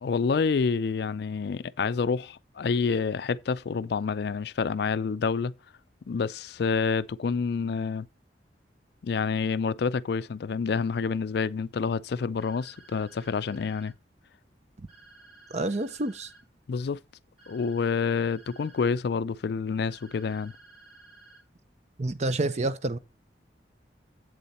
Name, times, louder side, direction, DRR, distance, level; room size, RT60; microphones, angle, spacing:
voice 1, 0.0-5.5 6.1-8.1 9.0-13.9 16.7-17.0 17.5-20.5, left 5 dB, 65° left, 0.4 m, -28 dB
sound 1, 12.4-13.9 14.9-16.4 17.4-18.9 19.9-21.4, right 3 dB, ahead, 2.8 m, -54 dB
voice 2, 15.5-16.3 22.0-23.0, right 2 dB, 40° right, 0.7 m, -28 dB
8.2 x 7.0 x 4.2 m
head